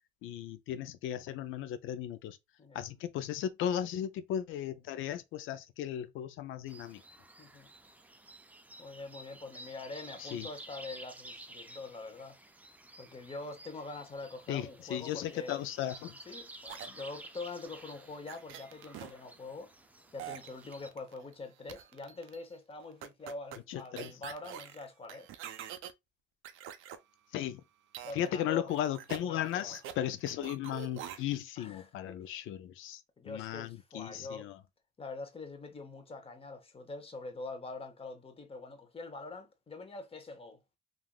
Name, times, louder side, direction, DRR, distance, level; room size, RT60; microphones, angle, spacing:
voice 1, 0.2-2.4 2.7-7.0 10.2-10.5 14.5-16.2 23.7-24.1 27.3-27.6 28.1-34.6, left 11 dB, 85° left, 0.4 m, -36 dB
sound 1, 6.7-20.9, right 1 dB, 10° right, 0.3 m, -52 dB
voice 2, 7.4-7.7 8.8-12.4 13.0-15.6 16.3-19.7 20.1-25.3 28.0-28.7 29.3-29.8 31.6-32.2 33.2-34.5 35.0-40.6, left 3 dB, 30° left, 0.8 m, -44 dB
sound 2, 16.7-19.1 20.2-21.3 21.7-22.4 23.0-25.9 26.4-27.0 27.9-28.4 28.7-30.0 30.3-31.4, right 10 dB, 90° right, 0.4 m, -46 dB
3.4 x 2.4 x 2.2 m
cardioid pair, 90°, 20 cm